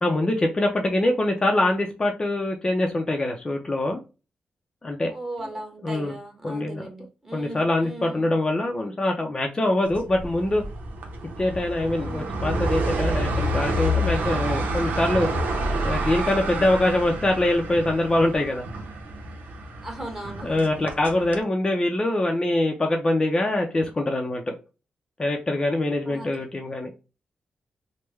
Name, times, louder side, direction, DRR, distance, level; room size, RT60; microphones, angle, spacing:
voice 1, 0.0-4.0 4.8-5.1 5.4-5.5 5.8-6.1 6.4-6.9 7.3-10.6 11.4-15.3 15.8-18.6 20.4-24.5 25.2-26.9, left 1 dB, 25° left, 2 dB, 0.5 m, -24 dB
voice 2, 5.1-8.4 12.0-12.4 19.8-20.7 26.1-26.4, right 2 dB, 15° right, 2 dB, 1.2 m, -38 dB
sound 1, 9.9-21.4, right 1 dB, 85° right, 0.8 m, -28 dB
3.4 x 2.1 x 3.1 m, 0.31 s
cardioid pair, 100°, 3 cm